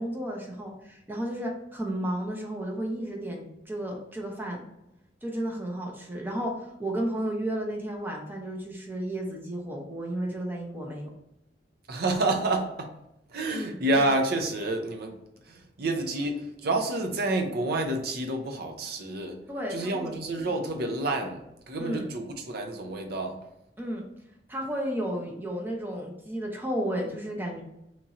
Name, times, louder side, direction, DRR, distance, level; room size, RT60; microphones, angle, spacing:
voice 1, 0.0-4.6 5.2-11.1 13.5-13.7 19.5-20.1 21.8-22.1 23.8-24.0 24.5-27.6, right 1 dB, 10° right, -1 dB, 0.7 m, -33 dB
voice 2, 11.9-12.9 13.3-15.2 15.5-19.4 19.7-23.4, right 2 dB, 60° right, 4 dB, 0.6 m, -29 dB
3.0 x 2.8 x 3.6 m, 0.86 s
head